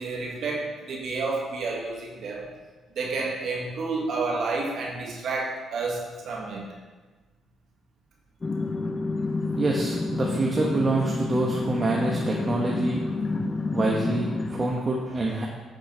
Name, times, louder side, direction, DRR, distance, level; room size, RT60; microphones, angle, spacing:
voice 1, 0.0-2.5 3.0-6.6, right 3 dB, 65° right, -1 dB, 1.9 m, -30 dB
sound 1, 8.4-14.7, left 3 dB, 35° left, 0.7 m, -29 dB
voice 2, 9.5-13.0 13.7-15.5, right 2 dB, 40° right, -2 dB, 1.2 m, -26 dB
9.9 x 6.3 x 3.4 m, 1.3 s
hypercardioid pair, 50°, 0 cm